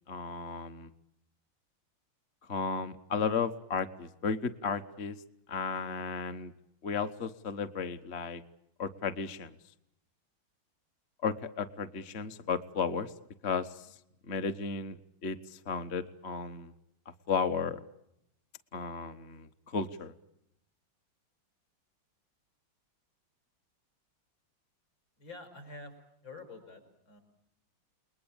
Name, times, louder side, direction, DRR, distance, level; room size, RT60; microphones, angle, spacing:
voice 1, 0.1-0.9 2.5-5.2 5.5-6.5 6.8-8.4 8.8-9.5 11.2-13.1 13.4-14.0 14.3-15.0 15.2-16.7 17.3-17.8 18.7-20.1, left 5 dB, 40° left, 8 dB, 1.2 m, -34 dB
voice 2, 25.2-25.9 26.2-27.2, left 3 dB, 65° left, 7 dB, 6.6 m, -47 dB
30.0 x 21.0 x 8.8 m, 0.81 s
omnidirectional pair, 2.2 m